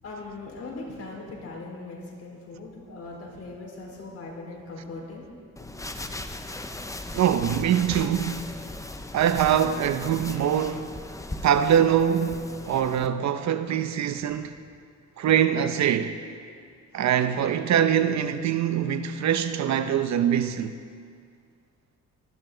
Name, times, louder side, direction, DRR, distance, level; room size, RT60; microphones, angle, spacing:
voice 1, 0.0-5.2 5.6-5.9, left 3 dB, 55° left, 4.5 m, -40 dB
sound 1, 5.6-13.1, left 2 dB, 10° left, 0.8 m, -38 dB
voice 2, 7.1-8.5 9.1-10.9 11.4-14.6 15.2-16.1 16.9-20.8, right 9 dB, 65° right, 0.8 m, -23 dB
19.0 x 13.0 x 3.9 m
cardioid pair, 90°, 30 cm